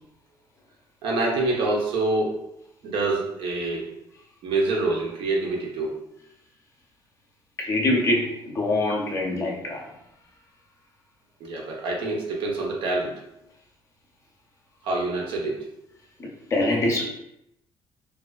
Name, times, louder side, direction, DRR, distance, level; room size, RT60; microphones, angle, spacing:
voice 1, 1.0-2.4 2.8-3.9 4.4-5.9 11.4-13.1 14.8-15.6, right 2 dB, 80° right, -1 dB, 0.6 m, -26 dB
voice 2, 7.6-9.8 16.2-17.0, left 2 dB, 35° left, 0 dB, 0.5 m, -24 dB
2.3 x 2.3 x 2.3 m, 0.82 s
cardioid pair, 165°, 9 cm